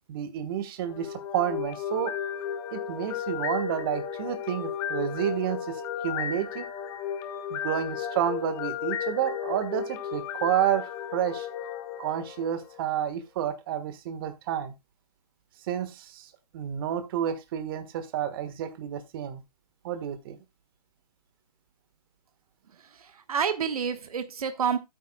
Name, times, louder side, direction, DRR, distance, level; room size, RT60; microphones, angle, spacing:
voice 1, 0.1-2.1 2.7-6.6 7.5-11.5 12.0-14.7 15.7-19.4 19.8-20.4, right 10 dB, 35° right, 1.5 m, -30 dB
sound 1, 0.8-12.9, left 8 dB, 15° left, 0.9 m, -34 dB
voice 2, 22.7-24.8, right 7 dB, 60° right, 1.4 m, -29 dB
13.0 x 8.9 x 2.3 m
hypercardioid pair, 155°, 21 cm